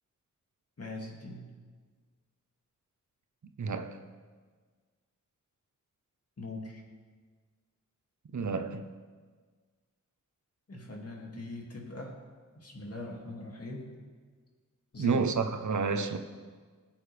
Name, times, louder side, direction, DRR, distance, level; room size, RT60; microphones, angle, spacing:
voice 1, 0.8-1.5 6.4-6.8 10.7-12.2 12.5-13.9 14.9-15.3, left 2 dB, 50° left, 2.5 m, -41 dB
voice 2, 3.6-4.0 8.3-8.9 15.0-16.2, right 4 dB, 65° right, 0.9 m, -30 dB
19.0 x 8.8 x 3.4 m
wide cardioid pair, 70°, 31 cm